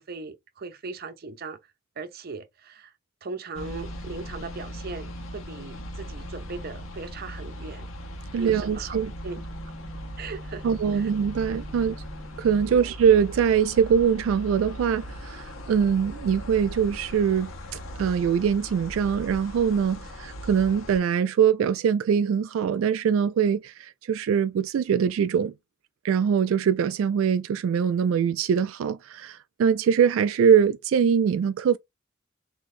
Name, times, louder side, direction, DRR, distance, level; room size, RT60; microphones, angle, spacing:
voice 1, 0.0-1.6 2.0-2.9 3.2-7.9 8.3-9.0 9.2-9.5 10.2-10.7 10.9-11.1 12.7-13.0, right 4 dB, 50° right, 0.6 m, -38 dB
sound 1, 3.5-21.0, equal, 85° left, 1.1 m, -39 dB
voice 2, 8.3-9.1 10.6-12.0 12.4-17.5 18.0-25.5 26.0-31.8, right 7 dB, 90° right, 0.3 m, -23 dB
3.1 x 2.7 x 4.2 m
head